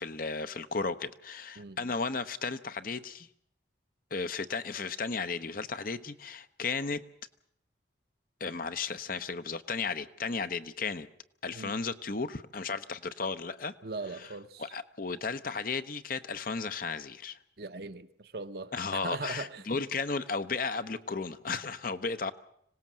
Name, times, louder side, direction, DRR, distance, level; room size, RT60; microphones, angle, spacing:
voice 1, 0.0-3.3 4.1-7.0 8.4-11.1 11.4-13.7 14.2-14.3 14.6-17.4 18.7-22.3, left 4 dB, 50° left, 0.9 m, -34 dB
voice 2, 13.8-14.7 17.6-19.6, right 3 dB, 55° right, 0.9 m, -40 dB
25.5 x 18.0 x 7.5 m
head